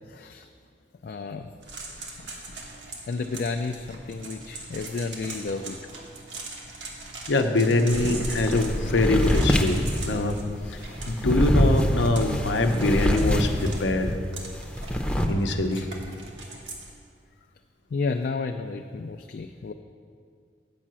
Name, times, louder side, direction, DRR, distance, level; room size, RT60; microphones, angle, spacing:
voice 1, 0.1-0.5 1.0-1.5 3.1-5.8 17.9-19.7, left 4 dB, 55° left, 5 dB, 0.3 m, -31 dB
sound 1, 1.6-16.9, right 2 dB, 80° right, 1.4 m, -41 dB
voice 2, 7.3-10.4 11.1-14.1 15.3-15.9, left 2 dB, 85° left, 6 dB, 0.7 m, -23 dB
sound 2, 7.9-14.2 14.5-15.3, equal, 5° left, 0.6 m, -25 dB
8.5 x 5.6 x 7.5 m, 2.2 s
head